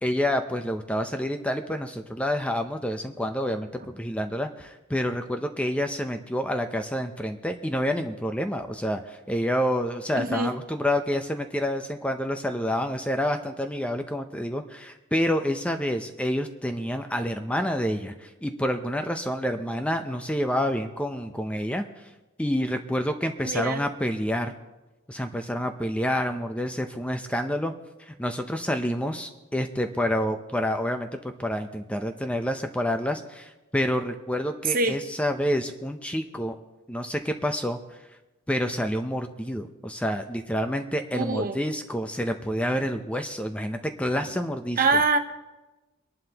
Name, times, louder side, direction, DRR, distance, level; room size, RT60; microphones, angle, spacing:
voice 1, 0.0-21.8 22.4-24.5 25.1-27.7 28.1-36.6 36.9-37.8 38.5-44.9, equal, 5° left, 6 dB, 0.6 m, -28 dB
voice 2, 10.1-10.5 23.4-23.8 34.7-35.0 41.1-41.6 44.1-44.2 44.8-45.2, right 3 dB, 45° right, 7 dB, 1.0 m, -24 dB
23.5 x 11.0 x 2.9 m, 1.1 s
head